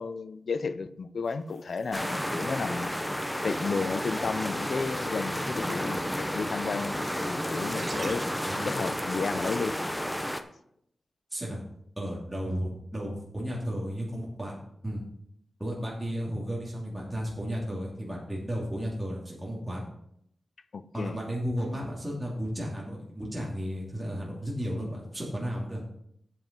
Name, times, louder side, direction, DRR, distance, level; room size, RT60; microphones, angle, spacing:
voice 1, 0.0-2.9 3.4-8.2 8.6-9.8 20.7-21.2, left 4 dB, 65° left, 12 dB, 0.5 m, -33 dB
sound 1, 1.2-8.5, right 1 dB, 30° right, 3.2 m, -47 dB
sound 2, 1.9-10.4, equal, 5° left, 0.7 m, -32 dB
voice 2, 11.3-11.6 12.0-14.6 14.8-15.0 15.6-19.8 20.9-25.8, equal, 10° right, -4 dB, 2.7 m, -33 dB
8.4 x 7.3 x 5.2 m, 0.72 s
wide cardioid pair, 125°, 0 cm